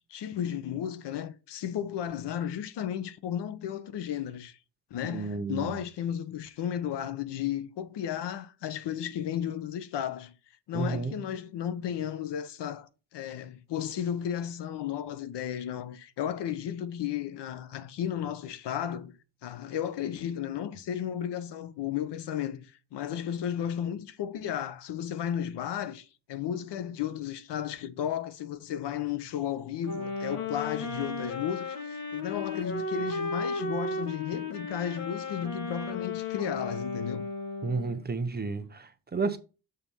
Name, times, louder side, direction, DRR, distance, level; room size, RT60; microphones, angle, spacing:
voice 1, 0.0-4.6 4.9-10.3 10.7-19.2 19.4-37.3, left 9 dB, 75° left, 1.1 m, -34 dB
voice 2, 5.1-5.8 10.7-11.2 37.6-39.4, right 4 dB, 25° right, 0.9 m, -32 dB
sound 1, 29.8-38.0, left 2 dB, 55° left, 1.9 m, -35 dB
7.0 x 4.3 x 5.4 m
cardioid pair, 135°, 41 cm